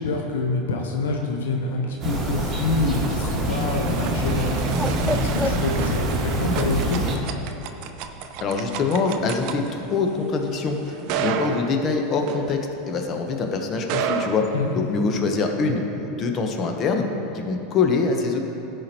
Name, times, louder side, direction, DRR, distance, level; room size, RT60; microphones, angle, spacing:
voice 1, 0.0-4.8 5.2-7.0 14.5-14.8, left 3 dB, 90° left, 1 dB, 0.8 m, -26 dB
Bird, 1.4-6.9, left 2 dB, 5° left, 0.3 m, -35 dB
sound 1, 2.0-7.2, right 1 dB, 30° right, 1.7 m, -25 dB
sound 2, 3.0-13.1 13.7-15.2, right 7 dB, 60° right, 0.5 m, -32 dB
voice 2, 8.4-17.0 17.3-18.4, left 4 dB, 40° left, 3 dB, 0.9 m, -24 dB
14.0 x 4.9 x 3.0 m, 2.8 s
hypercardioid pair, 110°, 0 cm